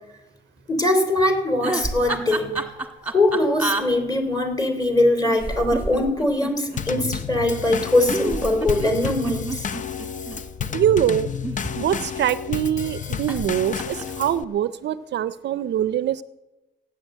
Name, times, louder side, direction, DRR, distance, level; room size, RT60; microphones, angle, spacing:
voice 1, 0.7-2.5 3.0-9.6, left 1 dB, 20° left, 5 dB, 3.3 m, -21 dB
sound 1, 1.5-3.8 5.3-6.8 8.1-10.4 11.3-12.2 13.3-13.5 13.8-14.2, right 3 dB, 10° right, 1.7 m, -29 dB
Drum kit / Snare drum / Bass drum, 6.8-14.4, left 7 dB, 40° left, 0.6 m, -31 dB
voice 2, 10.7-11.3 11.7-16.2, right 10 dB, 60° right, 16 dB, 0.5 m, -23 dB
15.0 x 9.5 x 7.8 m, 1.1 s
cardioid pair, 90°, 20 cm